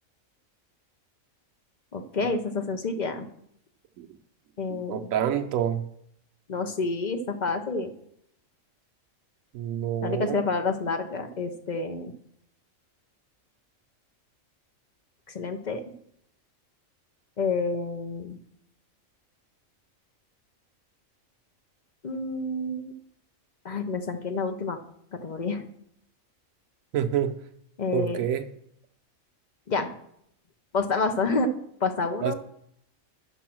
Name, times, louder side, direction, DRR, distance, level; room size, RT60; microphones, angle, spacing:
voice 1, 1.9-3.3 4.6-5.1 6.5-7.9 10.0-12.1 15.3-15.8 17.4-18.4 22.0-22.9 23.6-24.8 25.2-25.7 27.8-28.2 29.7-29.9 30.7-31.5 31.8-32.3, left 3 dB, 40° left, 7 dB, 0.8 m, -28 dB
voice 2, 4.7-5.8 9.5-10.4 26.9-27.3 27.9-28.4 32.2-32.3, right 10 dB, 90° right, 7 dB, 1.0 m, -27 dB
9.1 x 6.2 x 6.0 m, 0.72 s
omnidirectional pair, 1.4 m